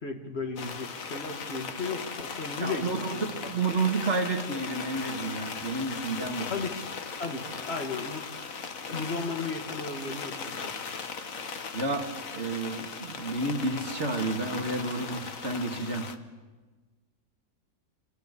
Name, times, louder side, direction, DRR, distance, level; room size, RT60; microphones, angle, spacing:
voice 1, 0.0-3.3 6.5-6.9 7.2-8.3 8.9-10.7, left 4 dB, 40° left, 4 dB, 2.6 m, -35 dB
sound 1, 0.6-16.2, left 5 dB, 55° left, 1.7 m, -38 dB
voice 2, 2.6-6.5 11.7-16.1, right 3 dB, 45° right, 3 dB, 2.6 m, -31 dB
28.5 x 27.0 x 6.9 m, 1.3 s
omnidirectional pair, 1.7 m